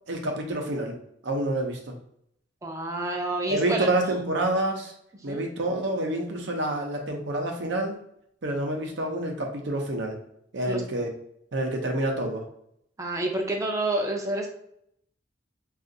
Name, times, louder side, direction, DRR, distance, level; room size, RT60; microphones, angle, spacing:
voice 1, 0.1-0.9 1.2-1.9 3.5-4.9 5.2-8.0 8.4-10.2 10.5-11.1 11.5-12.4, right 1 dB, 70° right, 3 dB, 0.6 m, -28 dB
voice 2, 2.6-4.0 5.2-5.4 10.7-10.8 13.0-14.5, right 2 dB, 15° right, 1 dB, 0.5 m, -28 dB
2.5 x 2.4 x 3.8 m, 0.73 s
head